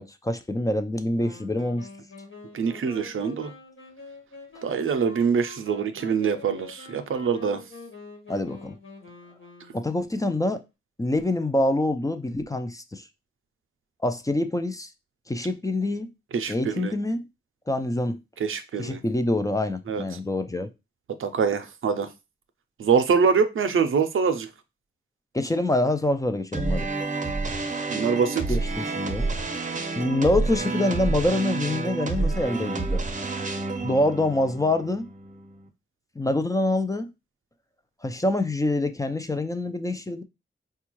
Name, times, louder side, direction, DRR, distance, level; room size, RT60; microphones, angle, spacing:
voice 1, 0.0-1.9 8.3-8.8 9.7-10.6 11.0-13.1 14.0-14.9 15.3-16.1 16.5-17.3 17.7-18.2 18.8-20.7 25.3-26.9 28.5-29.3 30.0-33.0 33.8-35.1 36.2-37.1 38.0-40.2, left 1 dB, 15° left, 0.4 m, -25 dB
Wind instrument woodwind instrument, 1.1-10.2, left 3 dB, 70° left, 1.4 m, -45 dB
voice 2, 2.5-3.5 4.6-7.6 16.3-16.9 18.4-19.0 19.9-20.0 21.2-22.1 22.8-24.5 27.9-28.4, right 6 dB, 75° right, 0.5 m, -24 dB
sound 1, 26.5-35.7, right 3 dB, 35° right, 0.6 m, -29 dB
4.4 x 2.3 x 3.0 m
cardioid pair, 65°, 21 cm